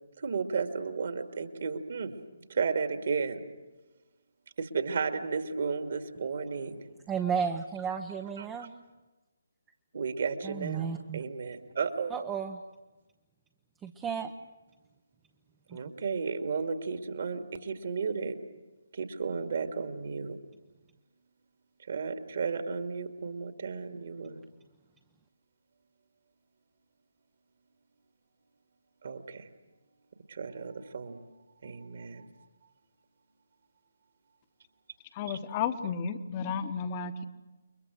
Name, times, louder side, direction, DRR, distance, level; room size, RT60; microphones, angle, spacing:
voice 1, 0.2-2.1 2.5-3.4 4.6-6.8 8.4-8.7 9.9-10.9 11.1-12.1 15.7-18.4 18.9-20.4 21.9-24.4 29.0-29.4 30.3-31.2 31.6-32.3 35.3-35.4, right 5 dB, 50° right, 7 dB, 2.4 m, -33 dB
voice 2, 7.1-8.7 10.4-11.2 12.1-12.6 13.8-14.3 15.7-15.8, right 7 dB, 10° right, 5 dB, 1.0 m, -33 dB
voice 3, 35.1-37.3, left 6 dB, 25° left, 10 dB, 1.4 m, -33 dB
29.5 x 23.5 x 6.5 m, 1.2 s
figure-of-eight pair, 140°, 0 cm